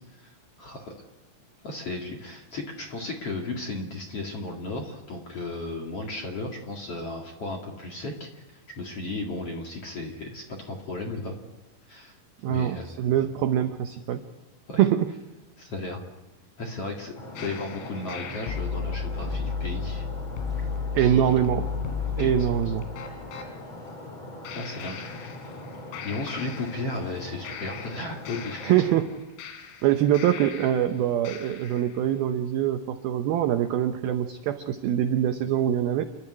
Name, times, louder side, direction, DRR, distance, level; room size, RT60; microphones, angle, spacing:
voice 1, 0.6-1.0 1.6-11.3 11.9-12.1 12.5-12.9 13.2-13.3 14.7-14.8 15.6-16.0 16.6-20.1 21.0-21.4 22.2-22.3 24.5-25.4 26.0-28.7, left 2 dB, 45° left, 0 dB, 2.2 m, -35 dB
voice 2, 12.4-14.2 14.8-15.1 20.9-21.7 22.2-22.9 28.6-29.1 29.8-36.0, right 11 dB, 80° right, 7 dB, 2.1 m, -24 dB
Stream, 17.2-29.0, left 1 dB, 25° left, 5.3 m, -41 dB
sound 1, 17.4-23.5 24.4-25.7 25.9-27.1 27.4-30.9 31.2-31.9, left 5 dB, 90° left, 4.7 m, -34 dB
29.5 x 12.5 x 9.9 m, 1.1 s
omnidirectional pair, 5.4 m